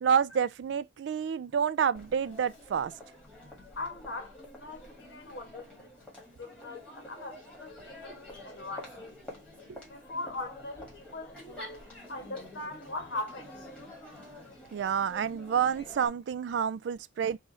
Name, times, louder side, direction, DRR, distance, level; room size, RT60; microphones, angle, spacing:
voice 1, 0.0-2.9 9.7-9.8 14.7-17.4, right 7 dB, 60° right, 0.3 m, -29 dB
Crowd, 1.9-16.1, left 1 dB, 5° left, 1.8 m, -48 dB
voice 2, 3.4-5.9 6.4-9.1 9.9-13.5, left 2 dB, 65° left, 1.6 m, -41 dB
4.7 x 2.6 x 4.2 m
head